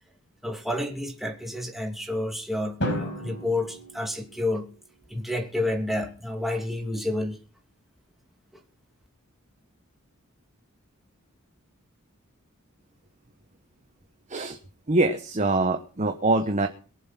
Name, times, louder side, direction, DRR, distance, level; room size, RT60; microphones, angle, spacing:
voice 1, 0.4-4.7 5.1-7.4, left 1 dB, ahead, 2.8 m, -30 dB
Drum, 2.8-4.9, equal, 60° left, 5.5 m, -33 dB
voice 2, 14.9-16.7, right 2 dB, 35° right, 1.1 m, -24 dB
22.5 x 7.7 x 5.9 m
head